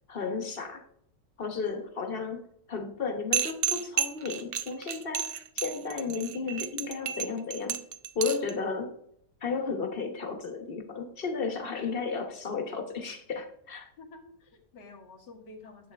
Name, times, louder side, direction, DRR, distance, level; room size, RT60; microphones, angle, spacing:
voice 1, 0.1-0.8 1.4-7.8 8.1-8.9 9.4-13.9, left 5 dB, 40° left, 6 dB, 1.2 m, -33 dB
sound 1, 3.3-8.5, right 8 dB, 70° right, 0.5 m, -31 dB
voice 2, 14.0-15.9, left 3 dB, 90° left, 4 dB, 2.0 m, -50 dB
10.5 x 7.8 x 3.5 m, 0.71 s
omnidirectional pair, 1.8 m